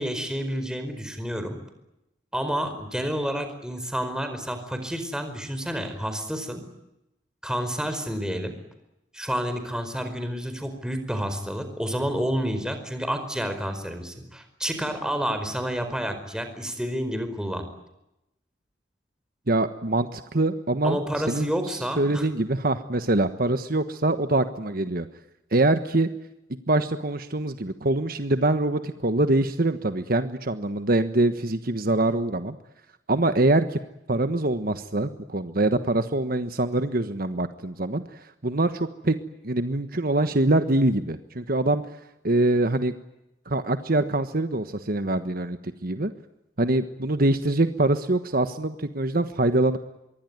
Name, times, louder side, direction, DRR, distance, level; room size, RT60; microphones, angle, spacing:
voice 1, 0.0-1.6 2.3-6.6 7.4-8.5 9.1-17.6 20.8-22.3, equal, 5° right, 7 dB, 4.8 m, -29 dB
voice 2, 19.5-21.0 21.3-21.5 22.0-25.1 25.5-26.1 26.7-32.6 33.1-33.8 34.1-39.2 39.4-41.8 42.2-42.9 43.5-46.1 46.6-49.8, right 2 dB, 55° right, 9 dB, 1.4 m, -24 dB
25.5 x 23.0 x 9.6 m, 0.89 s
head